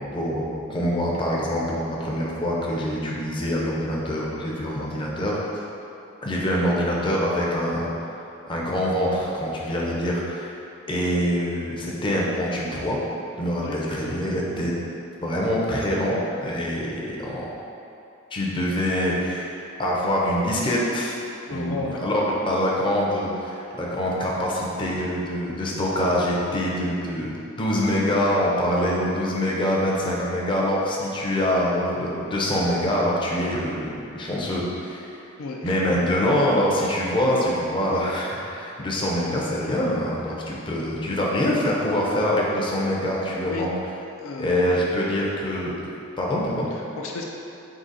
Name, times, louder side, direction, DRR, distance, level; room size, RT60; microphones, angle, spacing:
voice 1, 0.0-5.4 6.2-7.9 8.5-10.6 10.9-13.0 13.4-14.7 15.2-17.5 18.3-21.2 21.5-22.2 22.5-35.2 35.6-43.7 44.4-45.9 46.2-46.7, equal, 25° left, -4 dB, 0.5 m, -25 dB
voice 2, 21.5-22.0 35.4-35.7 43.4-43.6 44.2-44.6 46.7-47.2, left 3 dB, 70° left, -1 dB, 0.4 m, -33 dB
3.8 x 2.8 x 4.0 m, 2.7 s
head